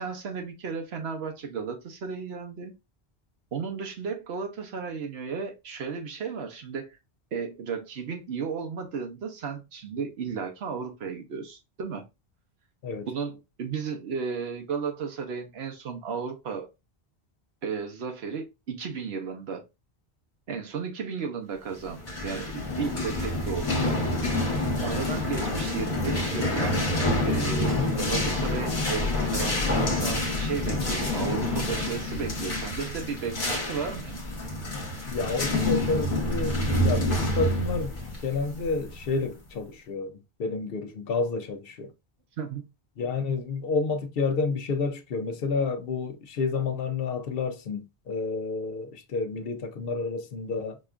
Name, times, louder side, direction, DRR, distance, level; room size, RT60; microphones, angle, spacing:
voice 1, 0.0-2.7 3.5-7.0 7.3-12.0 13.1-16.7 17.6-19.6 20.5-24.0 24.8-27.0 27.2-34.2 42.4-42.7, right 5 dB, 80° right, 1.0 m, -34 dB
sound 1, 21.9-39.3, left 1 dB, 50° left, 1.2 m, -28 dB
voice 2, 35.1-41.9 43.0-50.8, left 4 dB, 65° left, 0.8 m, -30 dB
4.9 x 2.4 x 2.4 m
omnidirectional pair, 1.1 m